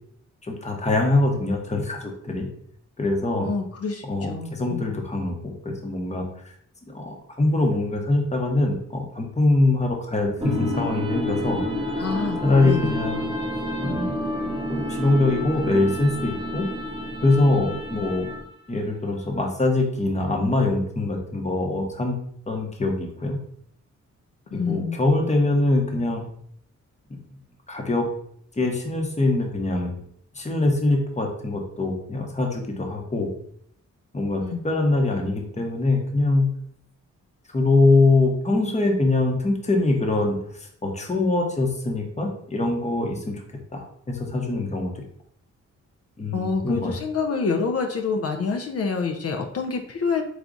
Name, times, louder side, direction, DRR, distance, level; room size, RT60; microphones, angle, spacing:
voice 1, 0.4-2.5 3.0-3.5 4.1-6.2 6.9-11.6 12.4-13.2 13.8-16.7 17.2-18.3 18.7-22.2 22.5-23.4 24.5-26.2 27.7-28.0 28.6-29.9 30.3-33.3 34.1-36.5 37.5-43.4 43.7-45.0 46.2-46.9, left 2 dB, 20° left, 1 dB, 0.9 m, -23 dB
voice 2, 3.4-4.9 12.0-13.0 24.5-25.0 34.4-34.6 46.3-50.2, left 4 dB, 50° left, 3 dB, 0.5 m, -27 dB
sound 1, 10.4-18.6, equal, 15° right, 0.9 m, -29 dB
4.8 x 2.3 x 3.9 m, 0.65 s
cardioid pair, 90°, 31 cm